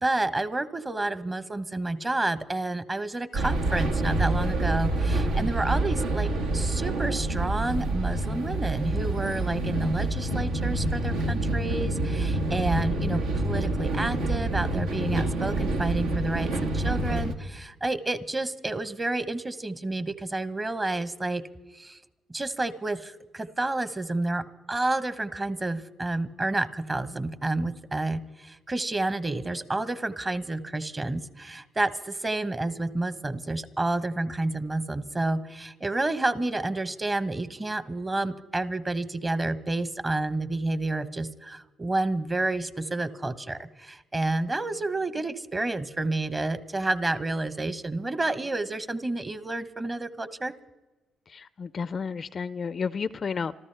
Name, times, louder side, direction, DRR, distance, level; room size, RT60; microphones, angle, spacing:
voice 1, 0.0-21.4 21.7-22.0 22.3-50.5, right 2 dB, 25° right, 13 dB, 0.9 m, -30 dB
sound 1, 3.3-17.3, right 2 dB, 90° right, 1.3 m, -27 dB
voice 2, 51.3-53.5, left 5 dB, 45° left, 17 dB, 0.4 m, -32 dB
26.0 x 14.0 x 3.4 m, 1.1 s
supercardioid pair, 70°, 0 cm